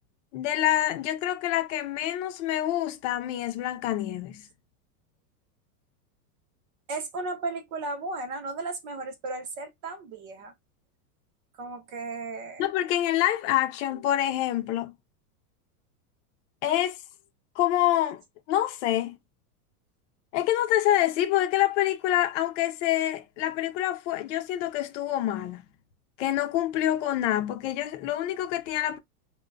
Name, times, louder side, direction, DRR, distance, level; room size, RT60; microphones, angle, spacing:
voice 1, 0.3-4.4 12.6-14.9 16.6-17.0 17.6-18.2 18.5-19.2 20.3-25.6 26.2-29.0, left 13 dB, 50° left, 0.7 m, -26 dB
voice 2, 6.9-10.5 11.6-12.7, right 3 dB, 40° right, 0.9 m, -35 dB
3.7 x 2.1 x 2.2 m
supercardioid pair, 150°, 47 cm